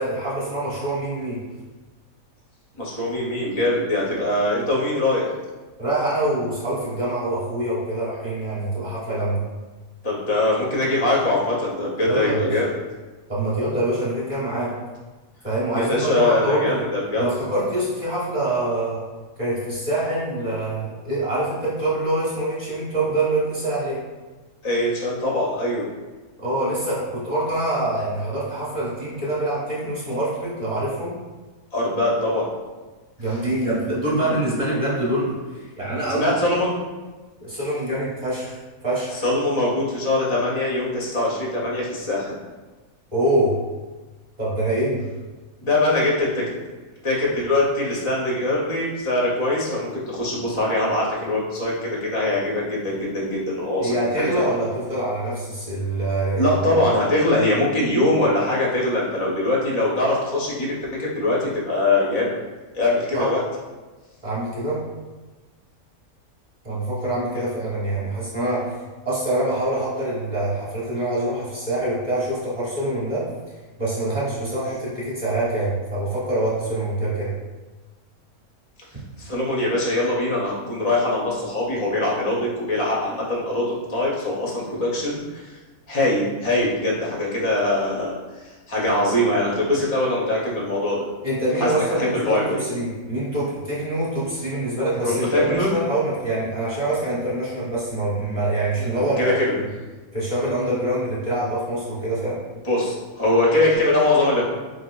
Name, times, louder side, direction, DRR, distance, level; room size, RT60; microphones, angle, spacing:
voice 1, 0.0-1.4 5.8-9.4 12.1-12.6 13.3-14.7 15.4-16.8 17.2-19.0 19.4-24.0 26.4-31.2 33.2-36.6 37.4-38.6 38.8-39.2 43.1-43.6 44.4-45.1 53.8-56.6 63.1-63.3 64.2-64.8 66.6-68.7 69.0-73.3 73.8-77.3 91.2-99.7 100.1-102.4, right 1 dB, 25° right, -8 dB, 0.9 m, -25 dB
voice 2, 2.8-5.3 10.0-12.7 15.8-17.2 24.6-25.9 31.7-32.5 33.3-33.4 34.3-34.4 36.1-36.7 39.2-42.3 45.6-46.4 47.0-54.4 56.4-62.4 62.7-63.4 67.3-67.4 79.2-85.5 85.9-88.2 88.7-91.1 91.6-92.6 95.0-95.7 98.8-99.5 102.6-104.4, left 2 dB, 45° left, -4 dB, 0.3 m, -22 dB
4.7 x 2.6 x 2.3 m, 1.3 s
omnidirectional pair, 1.5 m